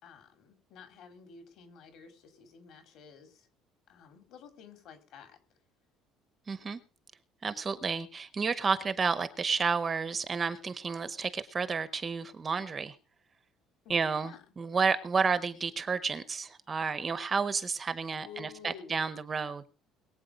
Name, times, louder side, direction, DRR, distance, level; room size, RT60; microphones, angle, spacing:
voice 1, 0.0-3.5 3.9-5.4 13.8-14.4 18.2-19.0, left 6 dB, 50° left, 5 dB, 4.2 m, -51 dB
voice 2, 6.5-6.8 7.4-13.0 13.9-19.7, right 5 dB, 20° right, 13 dB, 0.8 m, -31 dB
22.0 x 8.5 x 5.2 m, 0.36 s
cardioid pair, 180°, 0 cm